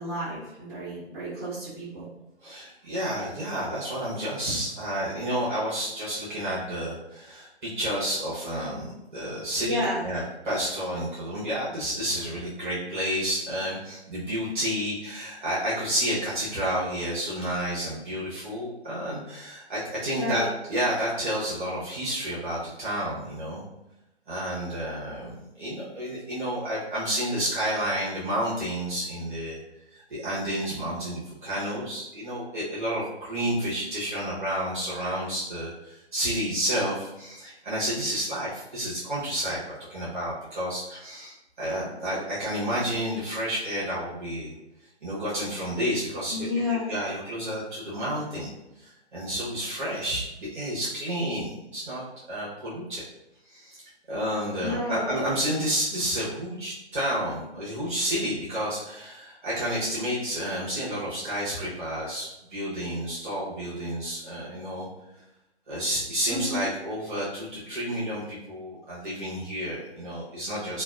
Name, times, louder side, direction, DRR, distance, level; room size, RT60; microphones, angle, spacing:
voice 1, 0.0-2.1 9.5-10.0 20.2-20.5 46.3-46.9 54.6-55.0 66.3-66.7, left 2 dB, 10° right, -15 dB, 1.4 m, -31 dB
voice 2, 2.4-20.4 20.7-23.6 24.3-29.6 29.9-44.5 45.0-46.5 46.9-48.5 48.8-52.0 52.3-53.0 53.5-64.9 65.7-70.8, equal, 45° right, -8 dB, 1.1 m, -30 dB
3.1 x 2.3 x 2.4 m, 0.91 s
figure-of-eight pair, 150°, 34 cm